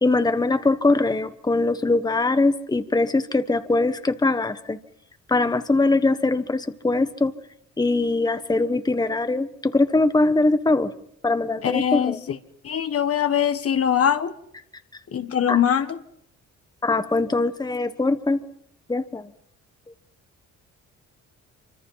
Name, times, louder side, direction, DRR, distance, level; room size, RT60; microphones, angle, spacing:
voice 1, 0.0-4.8 5.3-7.3 7.8-10.9 11.2-12.2 15.5-15.6 16.8-18.4 18.9-19.3, left 2 dB, 15° left, 1.2 m, -22 dB
voice 2, 11.6-12.4 12.6-14.3 15.1-16.0, left 9 dB, 50° left, 1.4 m, -22 dB
26.0 x 25.0 x 5.7 m
cardioid pair, 90°, 30 cm